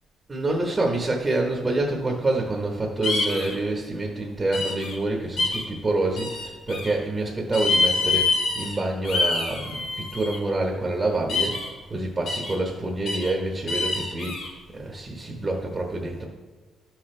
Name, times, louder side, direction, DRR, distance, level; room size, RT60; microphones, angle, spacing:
voice 1, 0.3-6.4 6.7-11.6 11.9-14.4 14.7-16.3, right 2 dB, 25° right, 1 dB, 1.3 m, -27 dB
sound 1, 3.0-3.5 4.5-4.9 5.4-5.6 6.2-6.9 7.5-8.7 9.0-10.4 11.3-11.7 12.3-12.5 13.1-13.3 13.7-14.5, left 3 dB, 80° left, 2.5 m, -26 dB
12.5 x 6.0 x 3.4 m, 1.4 s
cardioid pair, 90°, 0 cm